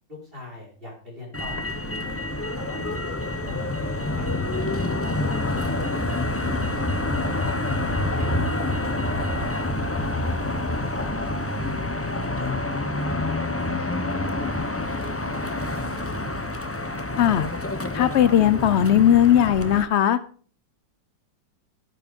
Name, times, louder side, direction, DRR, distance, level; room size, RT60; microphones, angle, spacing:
voice 1, 0.1-2.2 2.5-5.8 6.5-7.6 8.1-10.0 14.6-15.8, left 2 dB, 30° right, -2 dB, 5.2 m, -44 dB
Motor vehicle (road), 1.3-19.8, left 2 dB, 20° left, 0.3 m, -27 dB
voice 2, 17.9-20.2, left 10 dB, 80° left, 14 dB, 0.6 m, -18 dB
12.0 x 9.7 x 5.3 m, 0.43 s
omnidirectional pair, 2.0 m